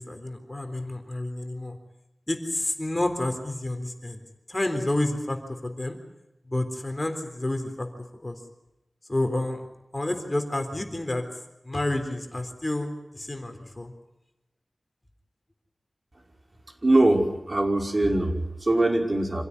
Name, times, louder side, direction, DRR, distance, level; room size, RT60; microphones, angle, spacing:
voice 1, 0.0-1.8 2.3-4.2 4.5-6.0 6.5-7.9 8.2-8.4 9.1-9.6 9.9-11.2 11.6-13.9, left 1 dB, 25° left, 5 dB, 3.8 m, -29 dB
voice 2, 16.8-19.4, right 2 dB, 40° right, 1 dB, 5.3 m, -22 dB
27.0 x 16.5 x 9.7 m, 0.94 s
wide cardioid pair, 80°, 0 cm